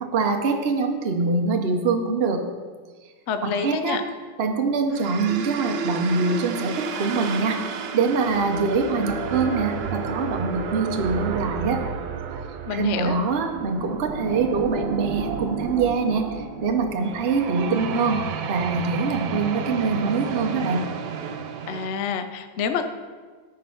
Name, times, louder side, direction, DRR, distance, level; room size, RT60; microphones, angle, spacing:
voice 1, 0.0-2.5 3.4-4.0 4.4-7.6 7.9-11.8 12.7-18.2 18.5-20.9, right 4 dB, 50° right, 3 dB, 0.7 m, -24 dB
voice 2, 3.3-4.0 12.7-13.2 21.7-22.9, left 6 dB, 80° left, 8 dB, 0.6 m, -27 dB
sound 1, 4.9-21.9, right 6 dB, 65° right, 1.3 m, -31 dB
13.5 x 5.3 x 5.6 m, 1.5 s
omnidirectional pair, 2.2 m